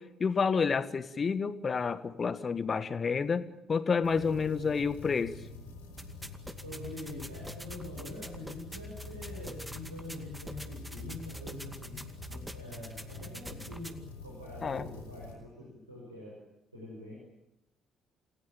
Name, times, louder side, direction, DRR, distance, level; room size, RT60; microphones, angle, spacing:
voice 1, 0.0-5.4 14.6-14.9, left 5 dB, 35° left, 13 dB, 1.5 m, -29 dB
sound 1, 4.0-15.3, left 3 dB, 75° left, 4.5 m, -47 dB
voice 2, 4.1-4.7 6.6-13.9 14.2-16.3 16.7-17.1, left 1 dB, 85° right, -4 dB, 5.6 m, -45 dB
sound 2, 6.0-14.0, right 1 dB, 10° right, 2.3 m, -45 dB
28.5 x 18.0 x 8.9 m, 0.88 s
figure-of-eight pair, 45°, 0 cm